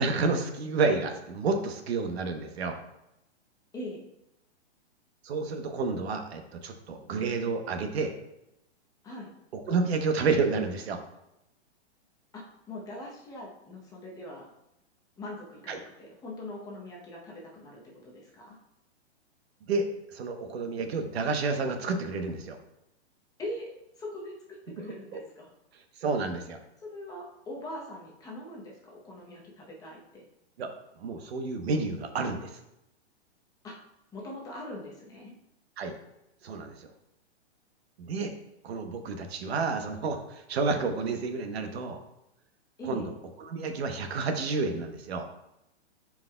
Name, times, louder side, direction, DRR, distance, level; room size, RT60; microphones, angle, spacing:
voice 1, 0.0-2.8 5.2-8.1 9.5-11.0 15.7-15.8 19.6-22.6 25.1-25.2 25.7-26.6 30.6-30.7 31.0-32.6 35.8-35.9 36.4-36.9 38.0-38.3 38.6-42.0 42.9-43.1 43.4-45.3, right 4 dB, 65° right, 6 dB, 0.9 m, -30 dB
voice 2, 3.7-4.1 9.0-9.3 12.3-14.5 15.2-18.6 23.4-25.5 26.8-30.2 33.6-33.8 34.1-35.3 42.8-43.1, left 1 dB, 10° left, -3 dB, 0.7 m, -42 dB
10.5 x 4.8 x 2.2 m, 0.87 s
hypercardioid pair, 150°, 33 cm